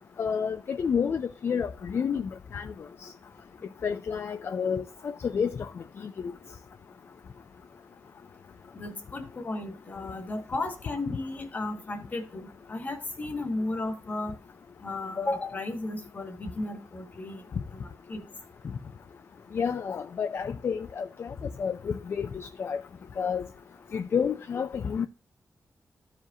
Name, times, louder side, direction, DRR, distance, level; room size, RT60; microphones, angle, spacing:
voice 1, 0.2-2.7 3.8-5.7 6.2-6.3 19.5-21.3 21.6-22.8 23.2-23.4 23.9-25.1, left 6 dB, 50° left, 0.4 m, -30 dB
voice 2, 8.7-14.4 14.8-17.4 17.7-18.2, left 2 dB, 35° left, 1.4 m, -34 dB
14.0 x 4.9 x 2.8 m
wide cardioid pair, 160°, 5 cm